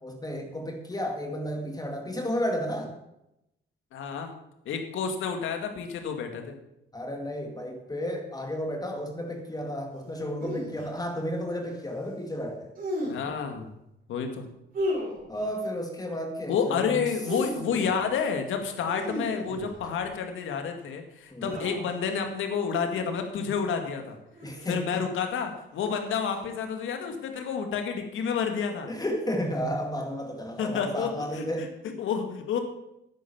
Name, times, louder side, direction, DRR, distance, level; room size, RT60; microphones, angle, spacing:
voice 1, 0.0-2.9 6.9-12.7 15.3-17.0 21.3-21.5 24.4-25.0 28.9-31.7, equal, 20° left, 3 dB, 2.2 m, -32 dB
voice 2, 3.9-4.3 4.7-6.5 13.0-13.7 14.1-14.5 16.5-24.2 24.7-28.9 30.6-32.6, left 6 dB, 80° left, 5 dB, 2.2 m, -30 dB
sound 1, 10.4-10.9 12.7-13.4 14.7-15.5 17.0-18.1 18.9-20.1 21.4-22.0 22.7-23.0 24.3-24.8 26.0-26.4, left 1 dB, 45° right, 4.8 m, -34 dB
11.0 x 9.4 x 7.1 m, 0.85 s
cardioid pair, 90°, 20 cm